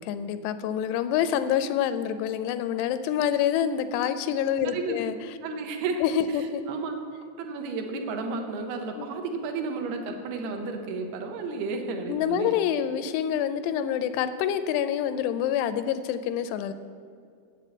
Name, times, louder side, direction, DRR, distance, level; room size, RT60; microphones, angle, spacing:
voice 1, 0.1-5.2 6.0-6.6 9.0-9.1 12.1-16.7, left 9 dB, 85° left, 11 dB, 2.6 m, -27 dB
voice 2, 5.4-6.0 6.3-6.9 7.4-12.6, right 4 dB, 75° right, 4 dB, 2.8 m, -32 dB
8.3 x 7.9 x 8.1 m, 2.3 s
omnidirectional pair, 4.8 m